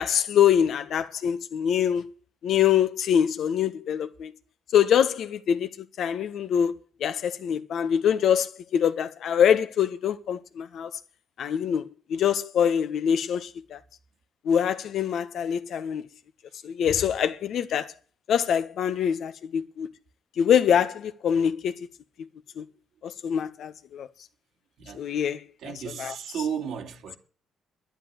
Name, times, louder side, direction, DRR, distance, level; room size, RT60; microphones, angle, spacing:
voice 1, 0.0-2.1 2.4-4.3 4.7-10.9 11.4-13.8 14.4-16.0 16.6-17.9 18.3-19.9 20.4-21.9 22.6-22.7 23.0-24.1 24.9-25.7 26.0-26.1, left 9 dB, 70° left, 1.3 m, -24 dB
voice 2, 25.6-27.2, right 7 dB, 75° right, 2.9 m, -33 dB
11.0 x 10.5 x 7.8 m
cardioid pair, 100°, 0 cm